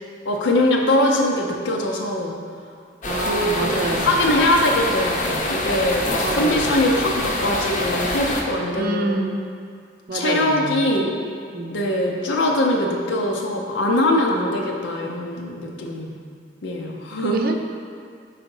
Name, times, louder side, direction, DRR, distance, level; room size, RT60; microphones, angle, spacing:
voice 1, 0.2-2.4 3.2-3.7 4.0-9.1 10.1-11.1 11.7-16.1 16.6-17.4, left 1 dB, 90° left, 0 dB, 0.6 m, -22 dB
sound 1, 3.0-8.4, left 2 dB, 45° left, 0.7 m, -25 dB
voice 2, 3.1-4.2 6.2-6.7 8.7-9.5 10.1-11.1 11.5-11.8 17.2-17.5, right 2 dB, 55° right, 4 dB, 0.5 m, -27 dB
4.8 x 4.1 x 5.3 m, 2.3 s
head